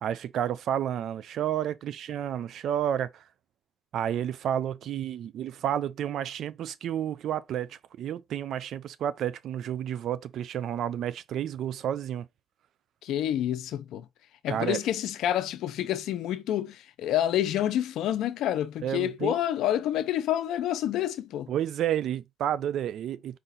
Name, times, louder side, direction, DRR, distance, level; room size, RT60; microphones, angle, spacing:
voice 1, 0.0-3.2 3.9-12.3 14.5-14.8 18.8-19.3 21.5-23.4, right 10 dB, 75° right, 0.4 m, -31 dB
voice 2, 13.0-14.1 14.4-21.5, left 11 dB, 85° left, 0.5 m, -28 dB
4.9 x 2.5 x 4.0 m
cardioid pair, 90°, 0 cm